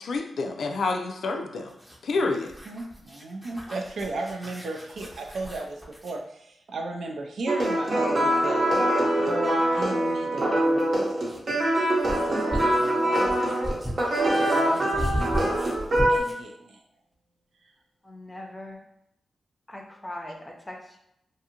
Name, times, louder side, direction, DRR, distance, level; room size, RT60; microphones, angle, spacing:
voice 1, 0.0-1.7 2.0-2.5, left 3 dB, 75° left, 3 dB, 0.3 m, -28 dB
sound 1, 1.7-6.2 8.6-8.7 10.7-16.5, equal, 15° right, 0.8 m, -35 dB
voice 2, 2.7-8.7 9.2-11.0 12.2-13.3 14.4-15.4 16.1-16.8, right 2 dB, 80° right, 2 dB, 0.4 m, -35 dB
sound 2, 7.5-16.2, right 1 dB, 50° right, 0.7 m, -24 dB
voice 3, 18.0-18.8 19.7-21.0, left 1 dB, 15° left, 1 dB, 0.6 m, -40 dB
2.5 x 2.4 x 2.8 m, 0.77 s
cardioid pair, 85°, 0 cm